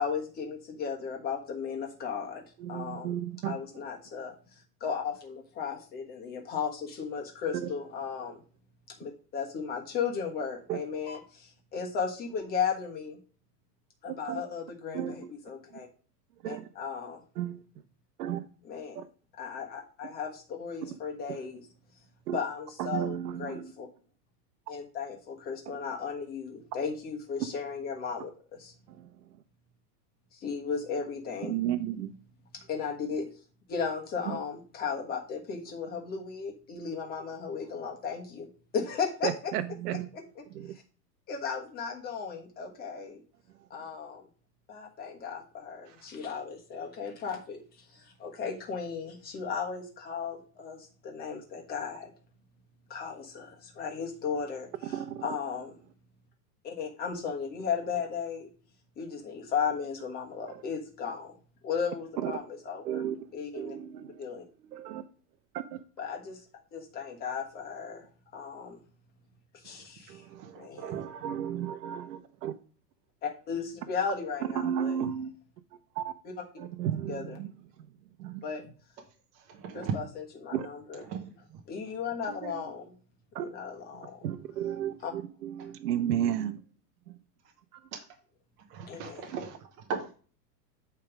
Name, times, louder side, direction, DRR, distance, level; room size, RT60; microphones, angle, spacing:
voice 1, 0.0-2.4 2.7-3.2 3.4-8.4 8.9-13.2 14.0-15.9 16.4-17.2 18.7-19.0 19.4-21.6 22.3-23.9 24.7-28.7 30.3-31.6 32.5-33.3 33.7-38.5 38.7-39.5 40.4-40.5 41.3-43.2 43.7-44.3 44.7-52.1 52.9-55.7 56.6-58.5 59.0-61.3 61.6-63.0 63.3-63.8 64.2-64.4 66.0-66.4 66.7-68.8 69.5-70.2 70.6-70.9 73.2-75.0 76.2-76.3 77.1-77.4 78.4-78.7 79.7-80.0 80.4-81.0 81.7-82.9 83.4-84.2 85.0-85.1 88.9-89.2, left 6 dB, 20° left, 1.4 m, -35 dB
voice 2, 2.6-3.5 7.6-7.7 8.2-8.3 10.7-10.8 14.0-14.4 14.9-15.3 16.4-16.7 17.4-17.6 18.2-18.5 18.9-19.0 20.8-20.9 21.3-21.4 22.3-22.4 22.8-23.7 25.7-25.8 28.9-29.1 31.4-32.2 34.3-34.4 39.2-40.1 40.5-40.7 54.8-55.2 60.5-60.6 62.2-62.3 62.8-63.2 63.5-64.2 64.6-65.0 65.5-65.8 70.1-72.6 74.5-75.3 76.0-76.1 76.6-77.5 78.2-78.4 80.5-80.7 83.3-83.5 84.2-86.6 87.1-87.2 87.7-87.8, right 10 dB, 70° right, 1.0 m, -33 dB
voice 3, 69.6-71.4 79.3-79.9 81.0-81.6 82.2-82.7 85.6-85.7 87.4-87.5 87.9-88.2 88.6-90.1, right 6 dB, 25° right, 0.8 m, -40 dB
8.5 x 3.4 x 6.0 m
supercardioid pair, 165°, 49 cm